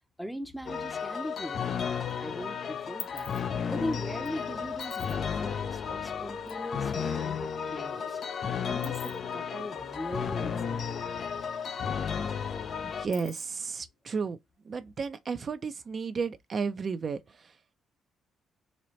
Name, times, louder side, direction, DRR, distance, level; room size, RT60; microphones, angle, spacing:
voice 1, 0.2-1.9 2.2-11.1, equal, 5° left, 0.7 m, -40 dB
sound 1, 0.7-13.1, left 7 dB, 55° left, 0.5 m, -33 dB
sound 2, 1.5-2.1 2.4-6.6 6.9-7.0 7.3-11.1 11.4-11.5 11.8-13.8, left 6 dB, 85° left, 1.0 m, -48 dB
sound 3, 5.4-13.4, left 8 dB, 70° left, 1.4 m, -52 dB
voice 2, 13.0-14.4 14.7-17.2, right 5 dB, 45° right, 0.5 m, -33 dB
4.2 x 2.9 x 3.1 m
cardioid pair, 90°, 0 cm